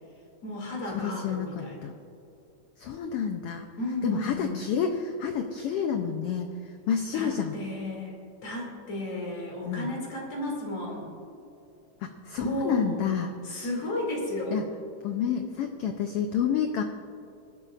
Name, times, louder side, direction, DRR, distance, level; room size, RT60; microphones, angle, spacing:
voice 1, 0.4-1.8 3.8-4.6 7.1-8.1 8.4-11.1 12.4-13.0 13.4-14.6, left 1 dB, 55° left, -2 dB, 3.6 m, -33 dB
voice 2, 0.9-1.9 2.8-3.7 4.0-7.5 9.7-9.9 12.0-13.7 14.5-14.6 15.0-16.8, left 7 dB, 90° left, 5 dB, 1.2 m, -29 dB
21.5 x 11.5 x 2.5 m, 2.7 s
omnidirectional pair, 3.4 m